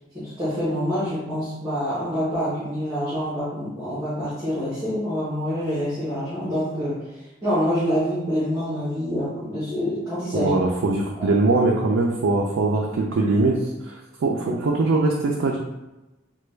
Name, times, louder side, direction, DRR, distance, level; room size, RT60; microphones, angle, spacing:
voice 1, 0.1-7.1 7.4-10.5 11.1-11.3, equal, 20° right, -11 dB, 0.9 m, -26 dB
voice 2, 10.3-13.9 14.2-15.6, right 3 dB, 80° right, -1 dB, 0.4 m, -21 dB
3.3 x 2.2 x 3.1 m, 1.0 s
head